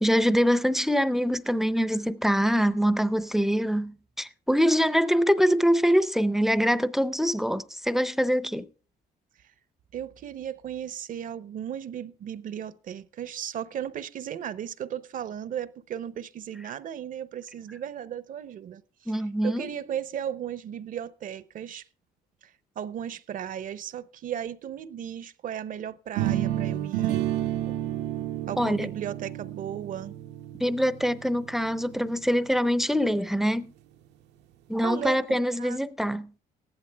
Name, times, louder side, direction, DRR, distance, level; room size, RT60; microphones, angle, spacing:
voice 1, 0.0-8.7 19.1-19.7 28.6-28.9 30.6-33.7 34.7-36.3, equal, ahead, 0.6 m, -24 dB
voice 2, 9.9-19.2 19.4-21.8 22.4-27.2 28.5-30.2 34.8-35.2 35.6-35.9, right 9 dB, 55° right, 0.8 m, -36 dB
sound 1, 26.2-32.1, right 12 dB, 90° right, 1.0 m, -30 dB
15.0 x 11.0 x 3.4 m
cardioid pair, 110°, 17 cm